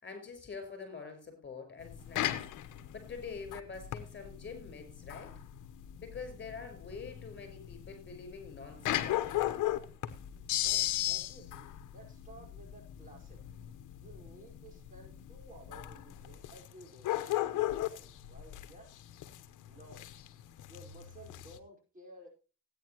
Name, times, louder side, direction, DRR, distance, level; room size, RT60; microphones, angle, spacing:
voice 1, 0.0-2.3 2.9-5.4 6.0-9.6, left 5 dB, 35° left, 7 dB, 5.1 m, -45 dB
sound 1, 1.8-21.6, left 14 dB, 80° left, 1.0 m, -37 dB
voice 2, 10.6-13.5 14.0-18.9 19.7-20.1 20.7-22.3, right 1 dB, 25° right, 0 dB, 4.8 m, -55 dB
16.0 x 9.5 x 3.0 m, 0.33 s
cardioid pair, 90°, 30 cm